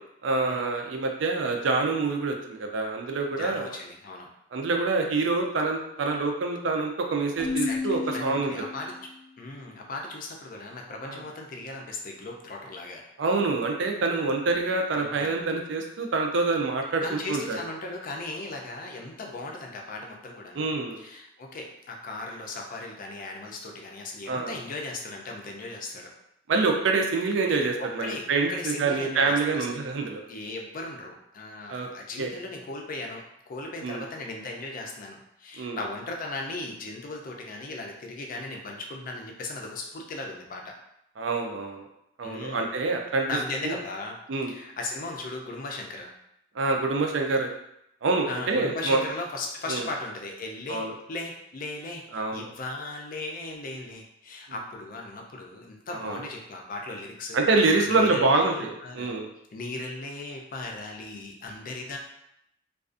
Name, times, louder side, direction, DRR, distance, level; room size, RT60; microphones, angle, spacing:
voice 1, 0.2-3.7 4.5-8.5 11.0-11.2 13.2-17.6 20.5-21.0 24.3-24.6 26.5-30.2 31.7-31.9 32.2-32.3 33.8-34.1 35.6-35.8 41.2-41.9 42.2-43.3 43.6-43.8 44.3-44.5 46.6-47.5 48.0-49.0 49.7-49.9 50.7-50.9 52.1-52.5 55.9-56.2 57.3-59.3, right 3 dB, 75° right, 3 dB, 0.4 m, -26 dB
voice 2, 3.4-4.3 7.6-9.0 9.4-13.0 15.0-15.3 17.0-26.1 27.8-29.8 30.3-40.7 42.2-42.6 43.3-44.2 44.5-46.1 48.3-57.4 57.8-59.2 59.5-62.0, left 2 dB, 45° left, 1 dB, 0.4 m, -37 dB
Keyboard (musical), 7.4-9.2, left 4 dB, 10° right, 0.5 m, -32 dB
2.4 x 2.3 x 2.4 m, 0.79 s
head